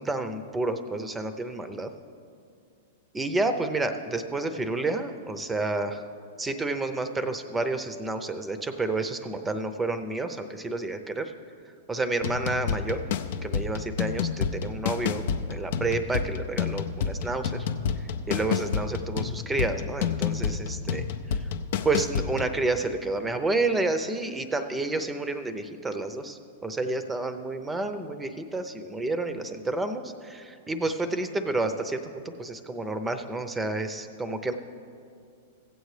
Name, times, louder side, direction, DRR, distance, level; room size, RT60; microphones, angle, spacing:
voice 1, 0.0-1.9 3.1-6.0 6.4-11.3 11.9-13.0 13.4-15.2 15.5-17.7 18.3-21.0 21.8-34.5, right 2 dB, 10° right, 9 dB, 0.6 m, -30 dB
sound 1, 12.2-22.6, left 7 dB, 65° left, 0.5 m, -30 dB
16.0 x 8.1 x 3.3 m, 2.3 s
hypercardioid pair, 110°, 0 cm